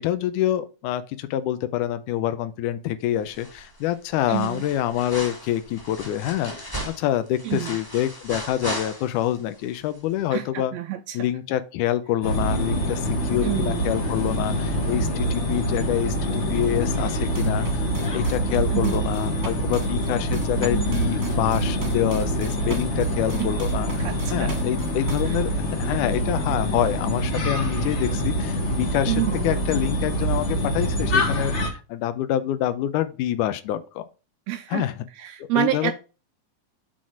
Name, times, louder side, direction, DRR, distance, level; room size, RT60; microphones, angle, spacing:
voice 1, 0.0-10.7 11.1-25.5 25.8-29.2 29.4-34.1 34.7-35.0 35.6-35.9, left 12 dB, 90° left, 2.1 m, -26 dB
sound 1, 3.3-3.8 4.1-9.4 9.7-9.8, equal, 10° left, 1.2 m, -36 dB
voice 2, 4.3-4.6 7.4-7.8 10.3-11.3 13.4-13.8 18.7-19.0 23.4-23.5 24.0-24.5 25.3-25.4 29.1-29.5 34.5-34.9 35.2-35.9, right 13 dB, 85° right, 1.5 m, -28 dB
sound 2, 12.2-31.7, equal, 60° left, 0.7 m, -25 dB
sound 3, 17.3-25.2, right 3 dB, 30° right, 1.2 m, -37 dB
7.6 x 4.2 x 4.6 m
omnidirectional pair, 3.6 m